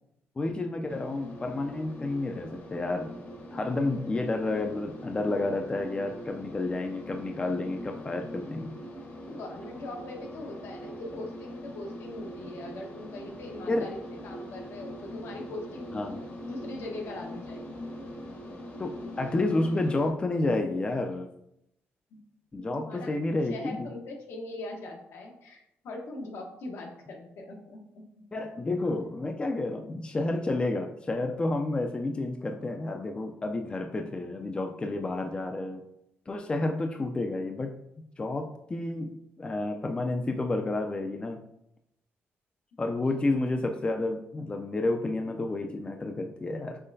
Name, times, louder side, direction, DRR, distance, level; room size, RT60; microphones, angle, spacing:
voice 1, 0.4-3.1 3.5-8.7 13.7-13.9 15.9-16.2 18.8-21.3 22.5-23.9 28.3-35.8 36.3-37.7 38.2-41.4 42.8-46.8, left 2 dB, 20° left, 4 dB, 0.4 m, -30 dB
sound 1, 0.9-20.1, equal, 55° left, 1.1 m, -42 dB
voice 2, 9.3-15.9 16.5-17.6 22.1-22.2 22.6-23.1 23.5-28.2 43.0-43.1, left 2 dB, 80° left, 0 dB, 1.0 m, -41 dB
5.6 x 3.1 x 2.6 m, 0.78 s
cardioid pair, 105°, 4 cm